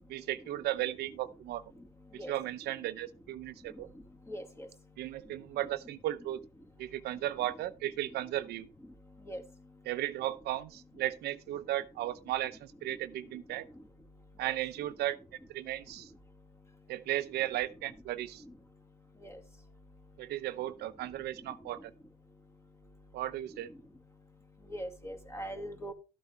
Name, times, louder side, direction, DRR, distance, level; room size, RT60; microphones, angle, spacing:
voice 1, 0.1-1.6 2.1-3.9 5.0-6.4 6.8-8.7 9.9-13.7 14.4-15.2 15.5-16.1 16.9-18.4 20.2-21.9 23.1-23.7, right 14 dB, 75° right, 0.8 m, -35 dB
voice 2, 4.3-4.7 9.3-9.4 19.2-19.3 24.7-25.9, equal, 15° left, 2.3 m, -40 dB
12.5 x 8.2 x 3.5 m
cardioid pair, 110°, 17 cm